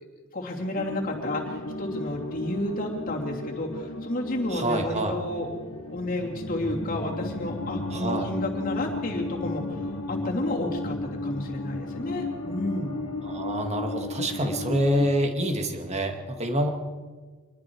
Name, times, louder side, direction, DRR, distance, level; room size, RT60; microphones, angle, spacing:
voice 1, 0.3-5.5 5.9-12.9, left 1 dB, 40° left, -1 dB, 3.0 m, -31 dB
sound 1, 0.7-15.1, left 2 dB, 90° left, 1.9 m, -34 dB
voice 2, 4.5-5.2 7.9-8.3 13.2-16.7, equal, 30° right, 4 dB, 2.2 m, -26 dB
26.0 x 21.0 x 4.8 m, 1.4 s
head